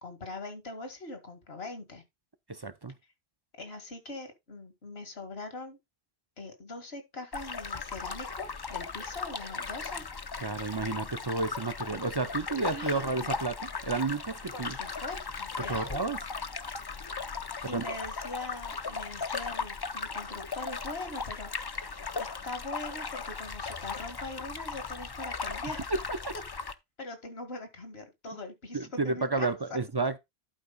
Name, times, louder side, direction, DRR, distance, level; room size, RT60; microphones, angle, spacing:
voice 1, 0.0-2.0 3.6-5.8 6.4-10.0 12.3-13.3 14.5-16.0 17.7-25.9 27.0-29.5, left 2 dB, 80° left, 2.2 m, -42 dB
voice 2, 2.5-2.9 10.4-14.8 15.7-16.2 17.7-18.0 25.9-26.0 28.7-30.2, right 3 dB, 30° right, 0.5 m, -31 dB
sound 1, 7.3-26.7, left 5 dB, 30° left, 0.5 m, -37 dB
11.5 x 4.7 x 4.0 m
omnidirectional pair, 1.0 m